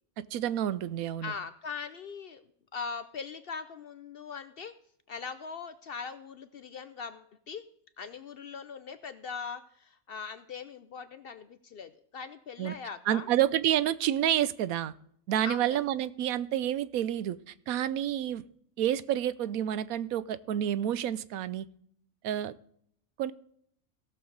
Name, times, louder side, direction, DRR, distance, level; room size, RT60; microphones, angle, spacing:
voice 1, 0.3-1.3 12.6-12.7 13.1-14.9 15.3-18.4 18.8-21.7 22.2-22.5 23.2-23.3, right 11 dB, 90° right, 16 dB, 1.1 m, -29 dB
voice 2, 1.2-4.7 5.1-7.6 8.0-13.3 15.4-15.8, left 5 dB, 60° left, 11 dB, 0.6 m, -41 dB
17.0 x 6.8 x 3.9 m, 0.67 s
omnidirectional pair, 1.4 m